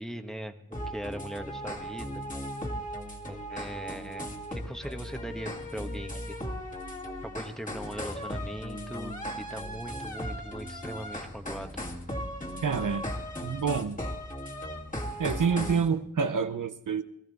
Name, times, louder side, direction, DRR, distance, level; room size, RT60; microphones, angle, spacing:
voice 1, 0.0-2.2 3.3-4.3 4.5-6.4 7.2-11.7, equal, ahead, 6 dB, 1.2 m, -40 dB
sound 1, 0.7-15.9, equal, 25° left, 2.1 m, -37 dB
voice 2, 12.6-13.1 13.4-14.0 15.2-17.0, right 6 dB, 75° right, 10 dB, 0.8 m, -27 dB
19.0 x 14.0 x 4.1 m, 0.77 s
wide cardioid pair, 55°, 32 cm